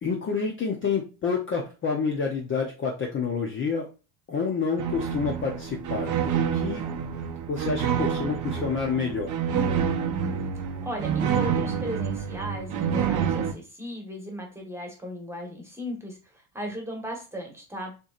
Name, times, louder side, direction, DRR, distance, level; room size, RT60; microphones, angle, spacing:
voice 1, 0.0-3.9 4.3-6.9 7.5-9.4, left 5 dB, 25° left, 0 dB, 0.7 m, -28 dB
sound 1, 4.8-13.5, right 7 dB, 40° right, 0.8 m, -28 dB
voice 2, 10.8-17.9, equal, 5° right, 1 dB, 1.3 m, -36 dB
6.9 x 3.1 x 2.4 m, 0.33 s
cardioid pair, 145°, 46 cm